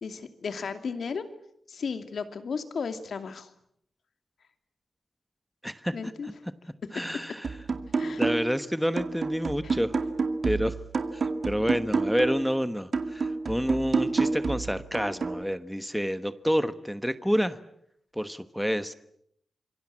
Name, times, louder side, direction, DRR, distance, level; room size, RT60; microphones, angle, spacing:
voice 1, 0.0-1.2 1.7-3.5 5.9-6.3 8.0-8.2 9.6-9.7, left 5 dB, 75° left, 9 dB, 2.6 m, -34 dB
voice 2, 5.6-5.9 6.2-6.3 6.9-7.5 8.0-10.0 10.4-10.7 11.1-17.6 18.1-18.9, equal, ahead, 12 dB, 1.2 m, -28 dB
sound 1, 7.4-8.6 9.0-12.5 12.9-15.4, right 4 dB, 60° right, 2.4 m, -29 dB
27.0 x 23.5 x 8.8 m, 0.72 s
wide cardioid pair, 100°, 0 cm